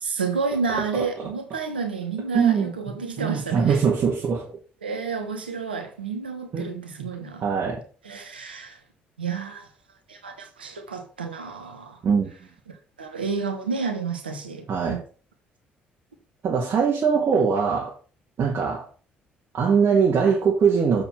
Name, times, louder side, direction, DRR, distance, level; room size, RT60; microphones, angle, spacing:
voice 1, 0.0-3.8 4.8-7.5 8.0-8.8 9.2-9.7 10.1-12.0 13.0-15.0, right 5 dB, 90° right, 1.1 m, -30 dB
voice 2, 2.3-2.7 3.2-4.5 6.5-6.9 7.4-7.8 12.0-12.3 14.7-15.0 16.4-17.9 18.4-18.9 19.5-21.0, right 6 dB, 50° right, 1.8 m, -21 dB
7.2 x 4.2 x 5.7 m
figure-of-eight pair, 50°, 5 cm